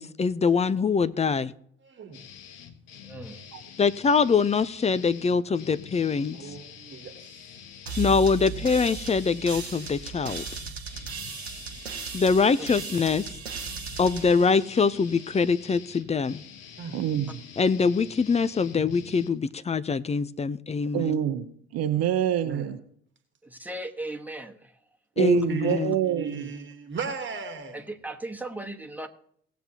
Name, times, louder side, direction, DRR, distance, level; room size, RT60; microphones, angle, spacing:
voice 1, 0.0-1.5 3.8-6.4 8.0-10.4 12.1-13.3 14.0-16.4 17.6-21.2 25.2-26.0, left 5 dB, 20° left, 0.6 m, -24 dB
voice 2, 1.8-2.2 6.3-7.4 16.8-17.0 22.4-22.7 25.5-27.7, right 5 dB, 40° right, 1.5 m, -37 dB
sound 1, 2.1-19.3, left 7 dB, 60° left, 1.3 m, -46 dB
voice 3, 3.0-3.7 12.6-12.7 23.4-24.8 27.7-29.1, right 1 dB, 5° right, 1.5 m, -38 dB
sound 2, 7.9-15.4, right 6 dB, 85° right, 0.9 m, -37 dB
voice 4, 16.9-17.3 20.9-21.5 21.7-22.8 25.2-26.5, right 11 dB, 55° right, 0.9 m, -26 dB
18.0 x 8.1 x 2.9 m
figure-of-eight pair, 50°, 31 cm